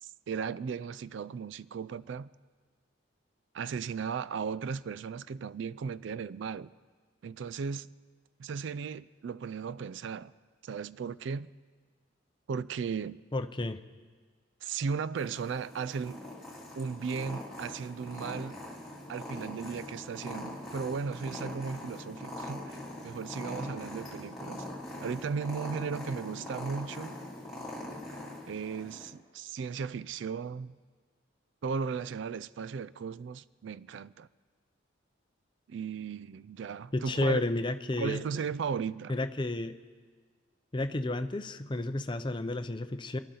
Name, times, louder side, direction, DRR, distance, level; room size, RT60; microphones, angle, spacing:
voice 1, 0.0-2.3 3.5-6.7 7.2-7.9 8.4-10.3 10.6-11.5 12.5-13.2 14.6-16.2 16.8-18.6 19.1-22.8 23.0-24.6 25.0-27.2 28.5-30.8 31.6-34.3 35.7-37.4 38.0-39.1, right 6 dB, 65° right, 0.3 m, -36 dB
voice 2, 13.3-13.8 36.9-38.2 39.1-39.7 40.7-43.2, left 2 dB, 25° left, 0.5 m, -31 dB
Purr, 15.2-29.1, left 1 dB, ahead, 3.1 m, -42 dB
27.0 x 11.5 x 3.9 m
head